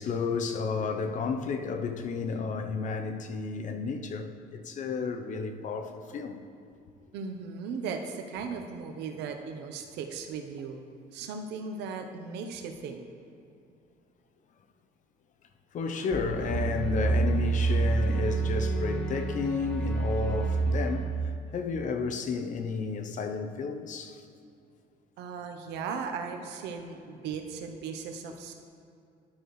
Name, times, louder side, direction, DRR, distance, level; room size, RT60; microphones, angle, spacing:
voice 1, 0.0-6.4 15.7-24.2, left 5 dB, 50° left, 0.6 m, -32 dB
voice 2, 7.1-13.0 25.2-28.5, right 5 dB, 85° right, 0.8 m, -37 dB
sound 1, 16.1-21.8, right 3 dB, 5° left, 0.8 m, -28 dB
11.5 x 6.5 x 3.1 m
cardioid pair, 110°, 17 cm